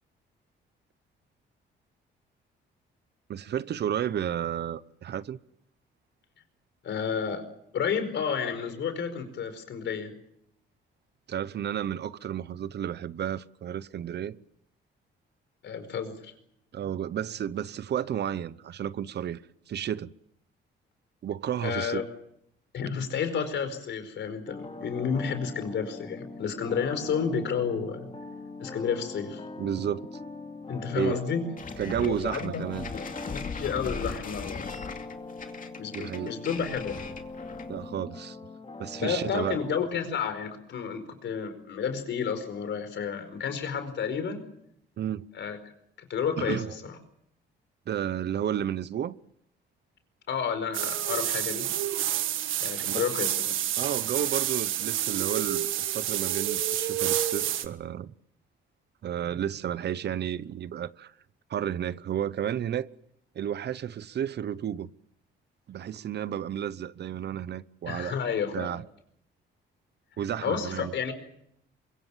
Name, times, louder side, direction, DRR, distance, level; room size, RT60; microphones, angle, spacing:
voice 1, 3.3-5.4 11.3-14.4 16.7-19.4 19.7-20.1 21.2-22.0 29.6-30.1 30.9-31.2 31.8-32.9 35.9-36.4 37.7-38.4 38.8-39.6 45.0-45.2 46.4-46.7 47.9-49.2 52.8-53.1 53.8-58.1 59.0-61.1 61.5-62.9 63.3-64.9 65.7-68.1 68.5-68.8 70.2-70.9, right 9 dB, 60° right, 0.9 m, -32 dB
voice 2, 6.8-7.5 7.7-10.1 15.6-16.3 21.6-22.0 22.7-28.1 28.6-29.4 30.7-31.5 32.0-34.6 35.8-37.0 39.0-44.4 45.3-45.6 46.1-46.9 50.3-51.7 52.6-53.5 67.9-68.7 70.4-71.1, left 6 dB, 65° left, 4.9 m, -31 dB
sound 1, 24.5-39.7, left 2 dB, 30° left, 2.9 m, -42 dB
sound 2, 31.6-37.8, left 5 dB, 45° left, 2.5 m, -39 dB
sound 3, 50.7-57.7, right 11 dB, 80° right, 1.5 m, -29 dB
24.0 x 23.0 x 7.4 m
cardioid pair, 90°, 20 cm